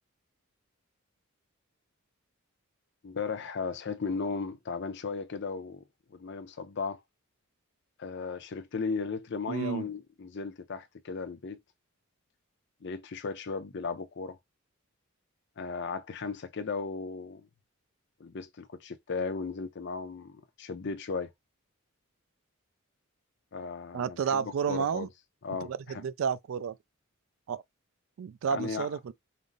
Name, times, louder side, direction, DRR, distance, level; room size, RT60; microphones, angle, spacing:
voice 1, 3.0-5.8 6.1-7.0 8.0-11.6 12.8-14.4 15.6-17.5 18.2-21.3 23.5-25.1 25.4-26.0 28.5-28.9, left 4 dB, 55° left, 0.5 m, -36 dB
voice 2, 9.5-9.9 23.9-25.1 25.6-26.8 27.5-27.6 28.2-29.1, right 7 dB, 70° right, 0.3 m, -31 dB
5.1 x 2.0 x 3.9 m
head